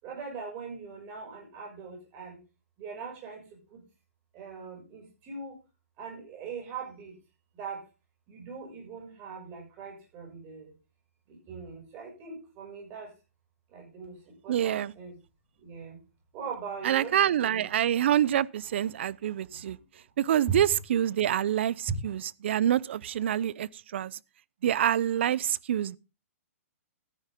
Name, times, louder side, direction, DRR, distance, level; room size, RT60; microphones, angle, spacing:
voice 1, 0.0-2.4 2.8-3.4 3.7-3.8 4.3-5.5 6.0-7.1 7.5-7.8 8.3-10.7 11.3-13.1 13.7-14.2 14.4-15.2 15.6-16.0 16.3-17.6 19.4-19.6, right 5 dB, 25° right, 6.4 m, -41 dB
voice 2, 14.5-14.9 16.8-19.8 20.2-24.2 24.6-26.0, right 10 dB, 55° right, 0.5 m, -26 dB
13.5 x 10.0 x 3.6 m
hypercardioid pair, 160°, 8 cm